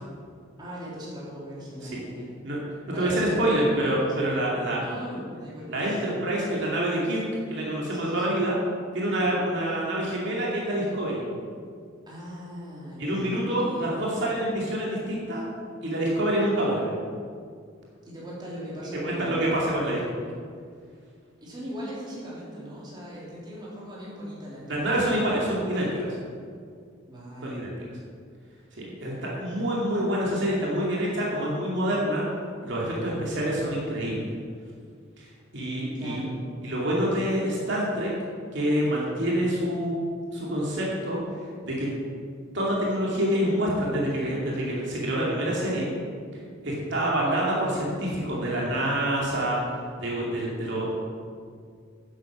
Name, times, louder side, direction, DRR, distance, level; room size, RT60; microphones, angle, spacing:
voice 1, 0.6-2.3 2.9-4.4 4.8-6.1 7.9-8.4 9.2-9.3 12.1-13.8 18.0-19.4 21.4-25.0 27.1-27.7 35.9-36.4, equal, 25° right, -7 dB, 3.2 m, -39 dB
voice 2, 3.0-4.8 5.1-5.2 5.7-7.2 7.5-8.5 8.9-11.2 13.0-15.4 15.8-16.9 19.0-20.2 24.7-26.2 27.4-27.7 28.7-32.3 32.6-34.3 35.2-35.3 35.5-36.2 36.6-38.1 38.5-39.9 40.3-41.2 41.6-41.9 42.5-45.9 46.6-49.6 50.0-50.9, right 1 dB, 60° right, -5 dB, 2.5 m, -26 dB
10.5 x 8.0 x 6.2 m, 2.2 s
head